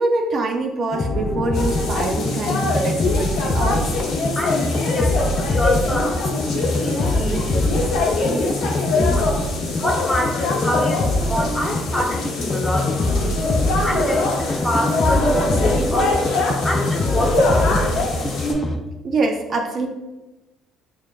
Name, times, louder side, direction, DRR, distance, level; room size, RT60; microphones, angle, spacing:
voice 1, 0.0-3.9 19.0-19.9, right 2 dB, 50° right, 3 dB, 0.4 m, -24 dB
sound 1, 0.9-18.8, left 1 dB, 35° left, 0.5 m, -24 dB
sound 2, 1.5-18.5, left 3 dB, 70° left, 0.9 m, -24 dB
voice 2, 4.3-9.3 9.8-13.4 13.8-16.2 16.6-17.9, left 1 dB, 10° left, -1 dB, 1.0 m, -27 dB
6.3 x 2.4 x 2.4 m, 1.1 s
supercardioid pair, 75°, 0 cm